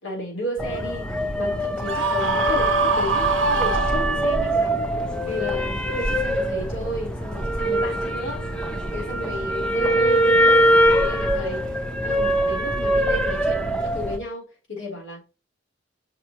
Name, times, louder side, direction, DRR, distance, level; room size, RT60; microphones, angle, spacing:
voice 1, 0.0-1.1 1.4-4.9 5.2-8.4 8.9-11.6 12.0-15.2, equal, 75° left, 4.0 m, -32 dB
sound 1, 0.6-14.2, equal, 5° left, 0.8 m, -23 dB
Screaming, 1.9-4.6, right 4 dB, 80° right, 1.2 m, -24 dB
7.0 x 5.9 x 3.0 m
head